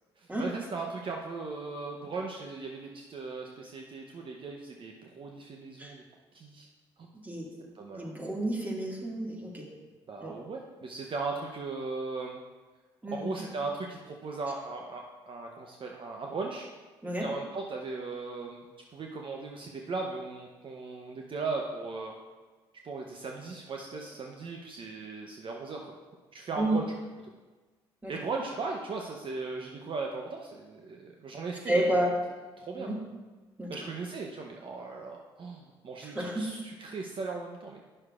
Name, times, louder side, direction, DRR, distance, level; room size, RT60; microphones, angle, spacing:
voice 1, 0.2-6.0 6.3-6.7 7.0-7.1 7.7-8.1 10.1-12.4 13.1-16.7 17.2-22.1 22.8-26.0 26.3-26.8 28.1-32.1 32.6-32.9 33.7-37.8, right 3 dB, 50° right, 1 dB, 0.8 m, -38 dB
voice 2, 8.0-9.7 10.2-10.3 13.0-13.4 17.0-17.3 26.6-26.8 28.0-28.1 31.7-32.1 32.8-33.0 33.6-33.7 36.0-36.5, right 1 dB, 15° right, -2 dB, 2.0 m, -30 dB
9.8 x 6.3 x 2.5 m, 1.3 s
hypercardioid pair, 50°, 11 cm